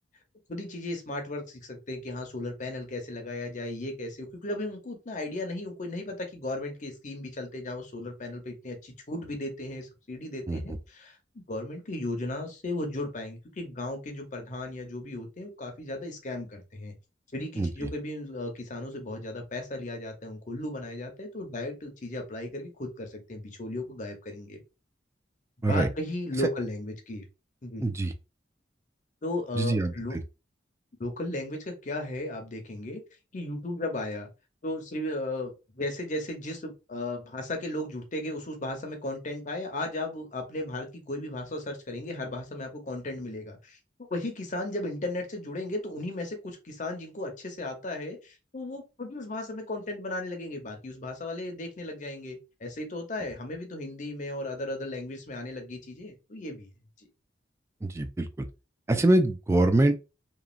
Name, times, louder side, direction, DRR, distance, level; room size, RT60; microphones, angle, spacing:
voice 1, 0.5-11.2 11.5-16.9 17.3-24.6 25.7-27.2 27.6-27.8 29.2-30.2 31.0-33.0 33.3-34.3 34.6-43.8 44.1-56.7 57.0-57.1, left 1 dB, 40° left, 0.7 m, -35 dB
voice 2, 17.6-17.9 25.6-25.9 27.8-28.1 29.5-30.2 57.8-58.5 58.9-60.0, right 2 dB, 15° right, 0.3 m, -24 dB
3.0 x 2.4 x 2.4 m
head